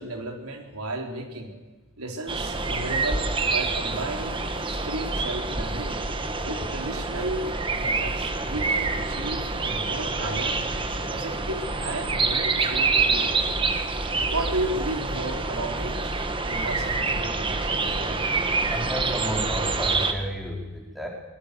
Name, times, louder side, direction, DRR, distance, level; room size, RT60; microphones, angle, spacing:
voice 1, 0.0-1.6 2.0-4.4 4.7-6.0 6.4-7.5 7.8-10.7 11.1-13.5 14.3-18.4, right 2 dB, 80° right, 3 dB, 3.9 m, -34 dB
sound 1, 2.3-20.1, right 3 dB, 20° right, 1.5 m, -27 dB
voice 2, 18.7-21.1, equal, ahead, -1 dB, 4.7 m, -32 dB
24.0 x 21.5 x 6.8 m, 1.2 s
head